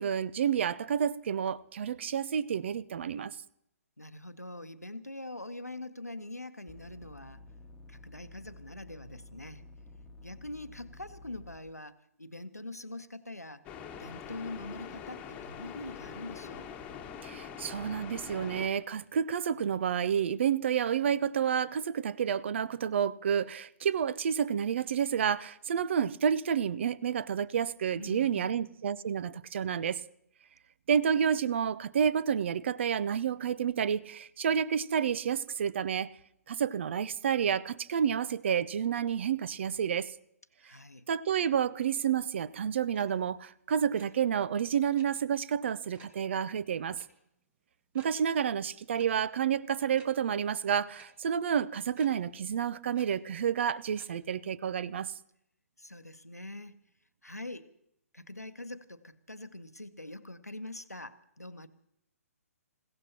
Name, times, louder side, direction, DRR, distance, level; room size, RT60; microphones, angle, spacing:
voice 1, 0.0-3.4 17.2-30.0 30.9-36.1 36.5-40.1 41.1-47.0 47.9-55.1, right 8 dB, 50° right, 0.5 m, -30 dB
voice 2, 4.0-7.4 7.9-9.6 10.2-13.6 14.0-16.7 28.0-28.6 40.6-41.1 55.8-56.8 57.2-57.7 58.1-61.7, left 2 dB, 90° left, 0.9 m, -44 dB
sound 1, 6.7-11.6, left 2 dB, ahead, 1.7 m, -51 dB
sound 2, 13.6-18.7, left 7 dB, 15° left, 1.5 m, -44 dB
sound 3, 42.9-43.1 43.3-43.5 43.8-44.1 44.9-45.1 45.9-46.2 46.9-47.1 47.4-47.5 47.9-48.1 48.9-49.1 49.9-50.1 51.0-51.1 51.9-52.1 52.9-53.1 54.0-54.1, right 4 dB, 15° right, 1.6 m, -55 dB
27.5 x 16.0 x 2.9 m
figure-of-eight pair, 125°, 8 cm